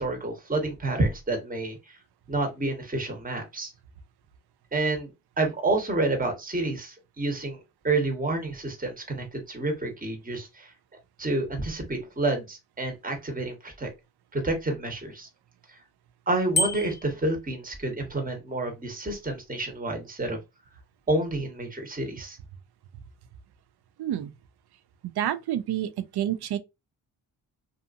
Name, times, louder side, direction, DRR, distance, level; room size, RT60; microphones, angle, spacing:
voice 1, 0.0-1.8 2.3-3.7 4.7-5.1 5.4-7.6 7.8-10.7 11.2-13.9 14.3-15.3 16.3-20.4 21.1-22.4, right 2 dB, 20° right, 1.2 m, -29 dB
Bicycle bell, 16.5-17.2, left 2 dB, 25° left, 0.6 m, -27 dB
voice 2, 24.0-24.3 25.2-26.6, right 11 dB, 60° right, 0.5 m, -28 dB
2.5 x 2.5 x 2.5 m
supercardioid pair, 50°, 44 cm